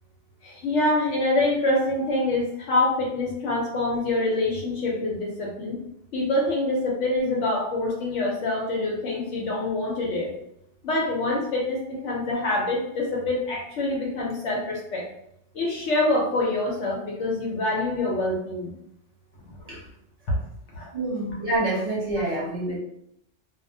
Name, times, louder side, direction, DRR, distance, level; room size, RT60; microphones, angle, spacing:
voice 1, 0.4-5.8 6.1-10.3 10.8-15.1 15.5-18.7 19.5-19.8 20.7-20.9 22.4-22.5, left 2 dB, 75° left, -2 dB, 0.9 m, -25 dB
voice 2, 20.9-22.8, right 2 dB, 35° right, -7 dB, 1.0 m, -27 dB
2.3 x 2.0 x 2.6 m, 0.75 s
omnidirectional pair, 1.2 m